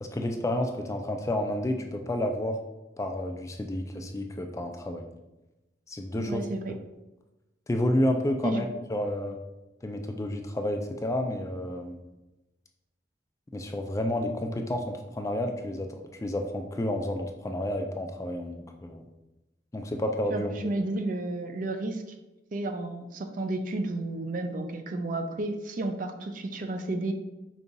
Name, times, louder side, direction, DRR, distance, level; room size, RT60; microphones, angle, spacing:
voice 1, 0.0-2.6 3.0-5.1 5.9-6.4 7.7-9.4 9.8-12.0 13.5-15.9 16.2-19.1 19.7-20.5, left 1 dB, 15° left, 4 dB, 0.3 m, -30 dB
voice 2, 6.1-6.8 8.4-8.6 20.3-22.0 22.5-27.1, right 2 dB, 45° right, 7 dB, 0.4 m, -32 dB
5.3 x 2.4 x 3.8 m, 1.0 s
head